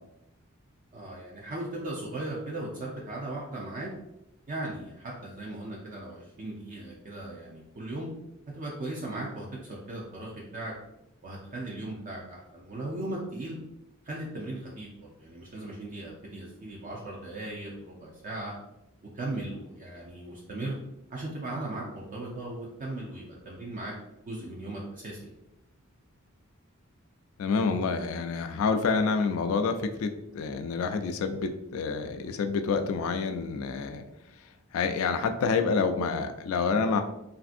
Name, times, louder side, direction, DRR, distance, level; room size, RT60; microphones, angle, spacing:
voice 1, 0.9-3.9 4.5-8.1 8.5-10.7 11.2-13.6 14.0-18.5 19.1-20.7 21.1-23.9 24.2-25.3, right 2 dB, 40° right, -4 dB, 0.4 m, -37 dB
voice 2, 27.4-34.0 34.4-37.0, left 4 dB, 70° left, 7 dB, 0.3 m, -28 dB
3.3 x 2.5 x 2.5 m, 0.88 s
head